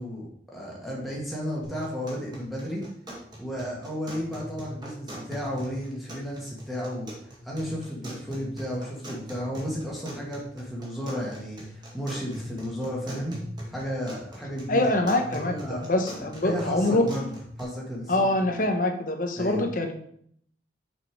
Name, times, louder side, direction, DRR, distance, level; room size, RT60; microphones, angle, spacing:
voice 1, 0.0-2.8 3.4-13.4 13.7-14.9 15.2-15.9 16.4-17.3 17.6-18.5 19.4-19.6, equal, ahead, -5 dB, 1.6 m, -33 dB
sound 1, 1.6-17.6, equal, 25° right, 1.7 m, -41 dB
voice 2, 14.7-17.1 18.1-19.9, left 2 dB, 45° left, 4 dB, 1.0 m, -24 dB
6.3 x 5.4 x 4.6 m, 0.67 s
head